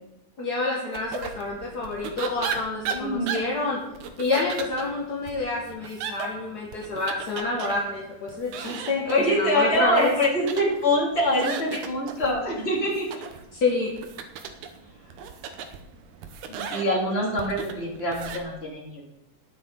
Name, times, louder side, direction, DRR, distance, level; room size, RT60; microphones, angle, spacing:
voice 1, 0.4-3.8 4.2-10.1 13.5-13.9, left 3 dB, 45° left, -3 dB, 1.3 m, -28 dB
sound 1, 0.9-18.4, right 6 dB, 75° right, 2.2 m, -37 dB
voice 2, 2.9-3.4 9.0-13.2 16.5-19.0, left 1 dB, 20° left, -3 dB, 2.5 m, -25 dB
19.5 x 6.6 x 3.9 m, 0.87 s
omnidirectional pair, 3.7 m